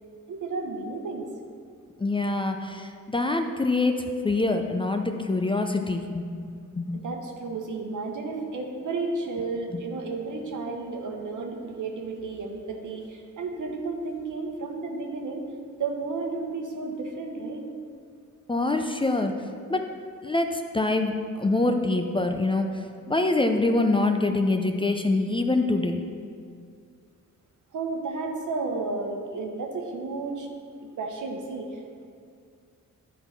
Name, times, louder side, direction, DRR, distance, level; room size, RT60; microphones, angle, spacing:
voice 1, 0.3-1.3 6.9-15.4 15.8-17.7 27.7-30.5 30.8-32.1, right 3 dB, 70° right, 2 dB, 1.1 m, -32 dB
voice 2, 2.0-6.2 6.5-7.0 18.5-19.3 19.7-19.9 20.2-22.7 23.1-26.0, left 2 dB, 15° left, 5 dB, 0.5 m, -25 dB
10.5 x 3.7 x 5.8 m, 2.3 s
cardioid pair, 90°, 32 cm